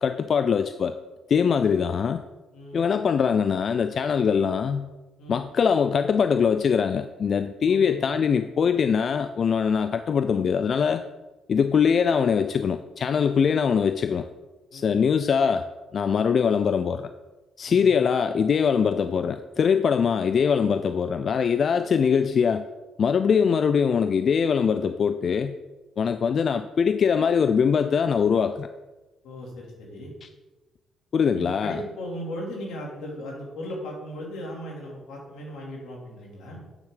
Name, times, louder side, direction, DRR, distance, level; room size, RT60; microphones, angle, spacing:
voice 1, 0.0-0.9 1.3-2.2 2.7-4.9 5.3-11.0 11.5-14.3 14.7-15.6 15.9-17.1 17.6-22.6 23.0-25.5 26.0-28.7 31.1-31.8, left 6 dB, 50° left, 10 dB, 0.4 m, -22 dB
voice 2, 7.7-8.0 14.7-15.0 17.7-17.9 29.2-30.1 31.3-36.7, equal, 85° left, -2 dB, 2.9 m, -37 dB
9.0 x 7.2 x 3.9 m, 1.1 s
cardioid pair, 90°, 0 cm